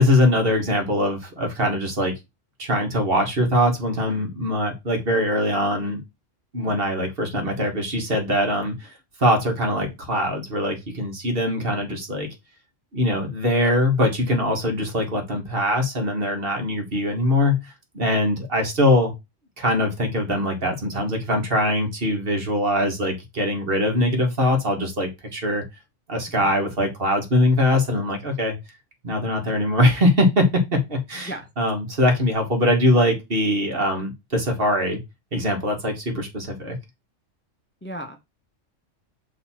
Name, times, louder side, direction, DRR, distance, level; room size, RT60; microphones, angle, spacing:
voice 1, 0.0-2.1 2.6-6.0 6.5-8.9 9.2-12.3 12.9-17.6 17.9-19.1 19.6-25.6 26.1-28.6 29.0-35.0 35.3-36.8, left 1 dB, 50° right, 3 dB, 1.7 m, -22 dB
voice 2, 37.8-38.2, right 1 dB, 10° left, 5 dB, 0.6 m, -35 dB
6.6 x 3.3 x 4.2 m, 0.22 s
omnidirectional pair, 1.3 m